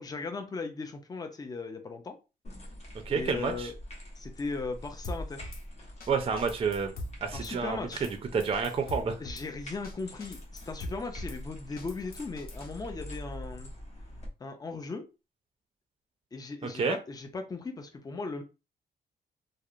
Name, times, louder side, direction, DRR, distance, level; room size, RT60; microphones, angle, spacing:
voice 1, 0.0-2.2 3.1-3.7 4.2-5.5 7.3-8.1 9.2-13.7 14.4-15.1 16.3-18.4, left 3 dB, 20° left, 0.5 m, -38 dB
sound 1, 2.4-14.3, equal, 40° left, 0.9 m, -45 dB
voice 2, 3.1-3.7 6.1-6.9 7.2-7.8 8.3-9.1 16.7-17.0, right 5 dB, 35° right, 0.4 m, -29 dB
Drum kit / Snare drum, 5.0-5.6 6.0-6.1 6.4-7.5 7.9-8.1 8.4-9.5 9.8-9.9 10.2-11.4 11.8-12.7, left 1 dB, 60° left, 0.6 m, -41 dB
2.7 x 2.0 x 2.4 m
cardioid pair, 100°, 18 cm